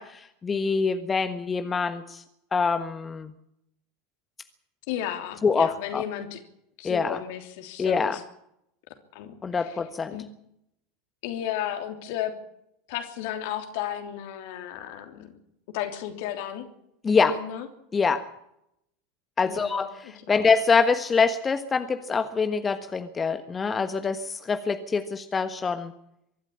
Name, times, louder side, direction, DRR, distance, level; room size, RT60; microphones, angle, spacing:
voice 1, 0.0-2.2 2.5-3.3 5.4-6.0 6.8-7.2 7.8-8.2 9.4-10.2 17.0-17.4 17.9-18.3 19.4-25.9, left 5 dB, 25° left, 9 dB, 1.4 m, -25 dB
voice 2, 4.9-6.4 6.8-8.2 9.1-9.3 9.6-9.8 10.1-10.2 11.2-12.3 12.9-15.3 15.7-16.7 17.3-17.7 19.4-20.5, left 11 dB, 60° left, 7 dB, 3.1 m, -34 dB
24.0 x 12.5 x 8.8 m, 0.77 s
figure-of-eight pair, 80°, 0 cm